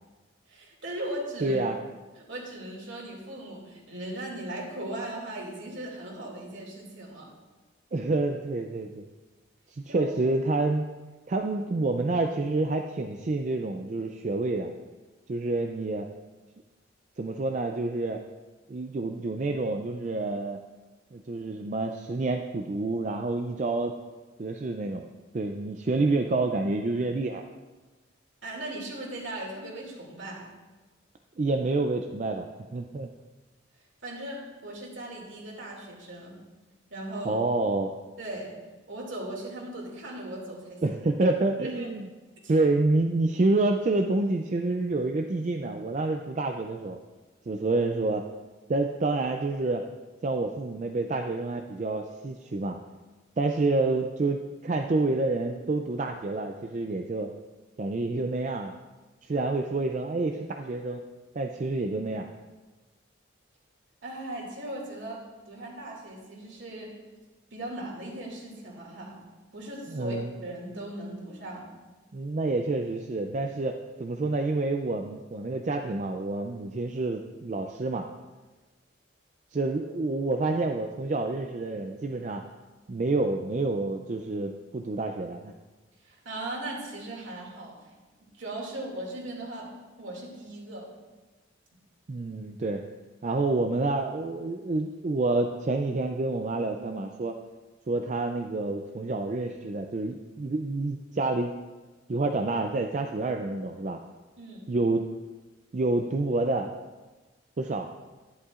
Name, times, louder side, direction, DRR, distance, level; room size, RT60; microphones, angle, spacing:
voice 1, 0.5-1.6 2.2-7.3 9.9-10.1 28.4-30.5 34.0-36.4 36.9-37.4 38.2-38.5 38.9-41.0 41.6-41.9 42.4-42.5 64.0-65.2 65.5-66.9 67.5-69.2 69.5-70.2 70.4-71.7 86.0-87.7 88.4-89.7 90.0-90.9 104.4-104.7, right 1 dB, 65° right, -2 dB, 2.4 m, -38 dB
voice 2, 1.4-1.8 7.9-9.0 9.7-10.8 11.3-14.7 15.3-16.1 17.2-18.2 18.7-20.6 21.1-23.9 24.4-25.1 25.3-27.4 31.4-32.4 32.7-33.1 37.2-37.9 40.8-42.1 42.5-47.0 47.5-48.2 48.7-49.8 50.2-52.8 53.4-57.3 57.8-58.7 59.2-61.0 61.3-62.3 69.9-70.3 72.1-78.1 79.5-82.4 82.9-85.5 92.1-92.8 93.2-97.4 97.9-101.5 102.1-104.0 104.7-105.1 105.7-106.7 107.6-107.9, right 2 dB, 35° right, 4 dB, 0.4 m, -28 dB
11.0 x 11.0 x 2.4 m, 1.2 s
head